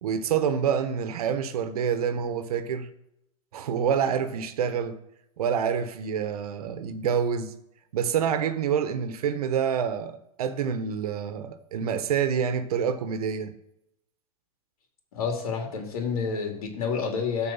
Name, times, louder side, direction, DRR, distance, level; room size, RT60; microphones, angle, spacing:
voice 1, 0.0-2.9 3.5-5.0 5.4-7.5 7.9-13.5, right 7 dB, 85° right, 1.2 m, -27 dB
voice 2, 15.1-17.5, left 5 dB, 75° left, 2.8 m, -29 dB
13.0 x 4.7 x 7.2 m
supercardioid pair, 175°, 19 cm